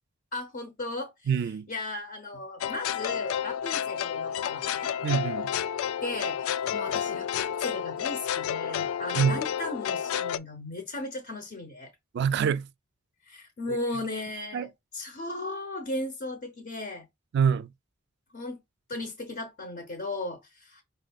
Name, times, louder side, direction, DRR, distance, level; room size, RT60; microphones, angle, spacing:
voice 1, 0.3-1.3 1.7-4.9 6.0-11.9 13.3-17.1 18.3-18.6 18.9-20.8, left 2 dB, 50° left, 0.7 m, -36 dB
voice 2, 1.3-1.7 5.0-5.5 9.2-9.4 12.1-12.7 13.7-13.8 14.5-14.7 17.3-17.7, right 7 dB, 55° right, 0.3 m, -25 dB
sound 1, 2.6-10.4, left 9 dB, 90° left, 0.3 m, -30 dB
5.0 x 3.4 x 2.3 m
head